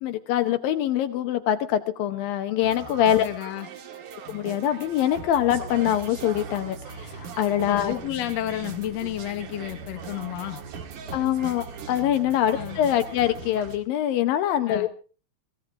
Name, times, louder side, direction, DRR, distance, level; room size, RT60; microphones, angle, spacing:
voice 1, 0.0-3.3 4.3-7.9 11.1-14.9, left 11 dB, 75° left, 8 dB, 2.6 m, -24 dB
sound 1, 2.6-13.8, right 5 dB, 60° right, 3.2 m, -39 dB
voice 2, 3.1-3.7 7.7-10.6 12.5-12.8 14.7-14.9, left 13 dB, 60° left, 6 dB, 2.1 m, -31 dB
23.0 x 16.0 x 3.7 m, 0.37 s
omnidirectional pair, 4.3 m